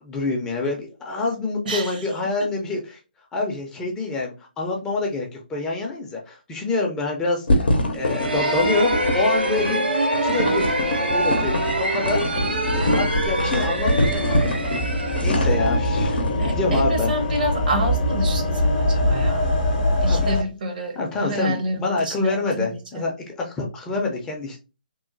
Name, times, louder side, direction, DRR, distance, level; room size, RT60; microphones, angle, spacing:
voice 1, 0.0-3.0 3.3-7.6 7.9-9.8 10.2-12.2 12.7-14.5 15.2-16.2 16.4-17.1 20.1-20.3 21.0-24.6, left 3 dB, 10° left, 0.4 m, -26 dB
voice 2, 1.6-2.0 2.4-2.5 8.3-8.7 16.4-19.5 20.0-23.0, equal, 60° right, 0.8 m, -28 dB
sound 1, 7.5-16.4, left 1 dB, 85° left, 0.6 m, -24 dB
sound 2, 8.0-16.7, right 1 dB, 90° right, 0.7 m, -25 dB
sound 3, 10.7-20.4, left 1 dB, 50° left, 0.7 m, -24 dB
2.9 x 2.0 x 2.5 m
hypercardioid pair, 145°, 5 cm